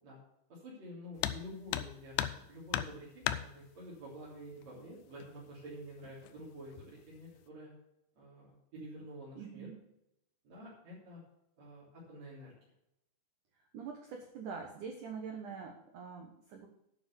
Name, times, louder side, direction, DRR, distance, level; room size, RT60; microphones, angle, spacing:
voice 1, 0.5-7.7 8.2-9.7 10.4-11.2 11.6-12.5, equal, 40° right, -8 dB, 4.2 m, -49 dB
sound 1, 1.2-1.4 1.7-2.4 2.7-3.4 4.6-4.7 5.2-5.3 6.0-6.4 6.8-7.2, left 13 dB, 85° left, 3.0 m, -34 dB
voice 2, 9.4-9.9 13.7-16.7, right 6 dB, 75° right, 3 dB, 1.9 m, -44 dB
9.6 x 7.1 x 6.8 m, 0.81 s
omnidirectional pair, 5.3 m